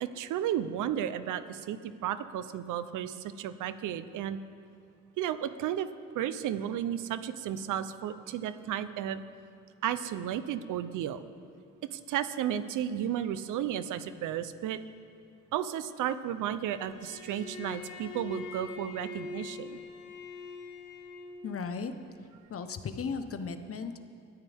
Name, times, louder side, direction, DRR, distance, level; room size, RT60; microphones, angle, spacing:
voice 1, 0.0-4.4 5.2-5.9 6.1-9.2 9.8-11.2 11.9-14.8 15.5-19.8, right 10 dB, 85° right, 12 dB, 0.8 m, -33 dB
Bowed string instrument, 16.7-21.5, left 3 dB, 90° left, 3.5 m, -43 dB
voice 2, 21.4-21.9 22.5-24.1, left 5 dB, 50° left, 8 dB, 1.2 m, -36 dB
23.0 x 14.0 x 3.6 m, 2.4 s
cardioid pair, 90°, 30 cm